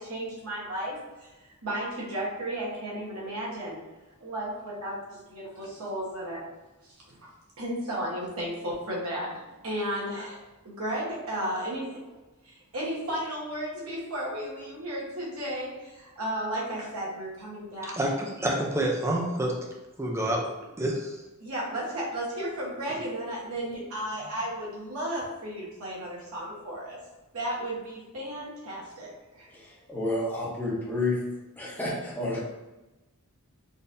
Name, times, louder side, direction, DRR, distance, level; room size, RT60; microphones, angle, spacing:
voice 1, 0.0-3.8 4.2-6.4 7.6-12.0 12.4-18.0 21.4-27.0 27.3-29.5, right 1 dB, 65° right, 1.2 m, -34 dB
voice 2, 17.8-19.6 20.0-20.5 20.8-21.2 22.9-23.0, right 1 dB, 10° right, 0.5 m, -28 dB
voice 3, 29.5-31.2 31.6-32.4, left 2 dB, 10° left, 0.8 m, -30 dB
4.0 x 2.6 x 2.6 m
head